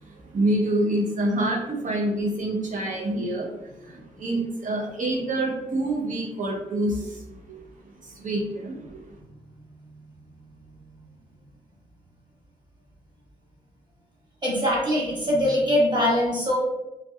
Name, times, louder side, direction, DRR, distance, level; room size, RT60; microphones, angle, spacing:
voice 1, 0.0-7.6 8.0-9.2, right 1 dB, 50° right, 0 dB, 0.7 m, -27 dB
voice 2, 14.4-16.6, left 1 dB, 25° right, -6 dB, 1.2 m, -22 dB
2.6 x 2.3 x 2.2 m, 0.98 s
supercardioid pair, 45°, 16 cm